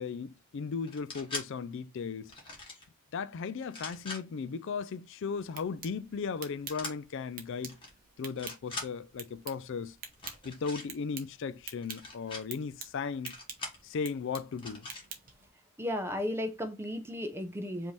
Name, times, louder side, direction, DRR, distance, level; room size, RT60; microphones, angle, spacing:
voice 1, 0.0-2.3 3.1-7.8 8.2-10.0 10.4-13.3 13.8-14.9, left 5 dB, 55° left, 0.4 m, -36 dB
sound 1, 0.9-1.5 2.3-2.8 3.6-4.2 6.7-6.9 7.7-7.9 8.2-8.9 10.1-10.9 11.8-12.4 13.2-13.8 14.6-15.0, left 2 dB, 25° left, 1.5 m, -41 dB
sound 2, 5.3-15.5, right 6 dB, 40° right, 0.9 m, -48 dB
voice 2, 15.8-17.9, left 1 dB, 10° right, 0.6 m, -34 dB
5.1 x 2.8 x 3.2 m
head